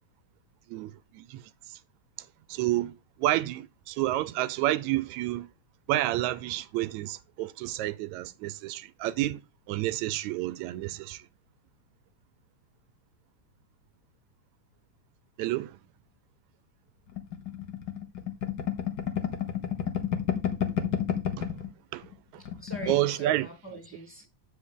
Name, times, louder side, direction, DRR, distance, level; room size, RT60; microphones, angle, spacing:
voice 1, 0.7-1.4 2.5-5.5 5.9-9.4 9.7-11.2 15.4-15.8 21.4-21.5 21.9-22.0 22.9-23.5, right 15 dB, 80° right, 1.9 m, -29 dB
sound 1, 17.2-21.7 22.0-22.1 22.4-23.0, left 9 dB, 60° left, 1.1 m, -30 dB
voice 2, 22.4-24.3, right 2 dB, 5° left, 2.5 m, -43 dB
8.4 x 6.1 x 3.7 m
omnidirectional pair, 3.3 m